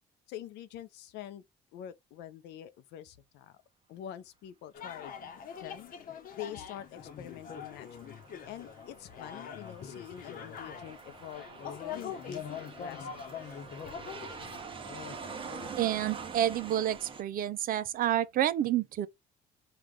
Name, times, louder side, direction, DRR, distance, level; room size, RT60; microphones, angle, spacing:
voice 1, 0.3-1.4 1.7-3.6 3.9-5.1 5.6-5.9 6.3-8.0 8.4-11.4 11.9-13.4, left 11 dB, 85° left, 0.7 m, -45 dB
sound 1, 4.7-15.7, left 7 dB, 55° left, 0.9 m, -44 dB
Aircraft, 7.0-17.2, right 5 dB, 30° right, 0.9 m, -46 dB
voice 2, 15.8-19.1, right 12 dB, 60° right, 0.6 m, -29 dB
4.9 x 2.5 x 3.6 m
cardioid pair, 110°, 17 cm